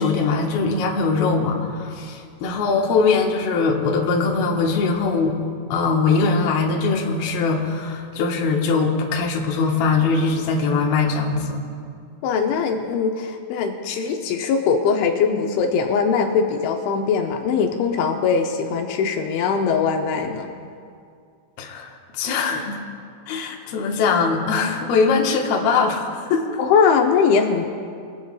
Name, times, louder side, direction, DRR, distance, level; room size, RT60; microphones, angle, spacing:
voice 1, 0.0-5.4 5.7-11.6 21.6-22.8 23.3-26.6, left 4 dB, 65° left, 0 dB, 2.8 m, -21 dB
voice 2, 12.2-20.5 26.6-27.7, left 5 dB, 85° left, 3 dB, 3.1 m, -21 dB
23.5 x 15.5 x 2.4 m, 2.3 s
omnidirectional pair, 5.3 m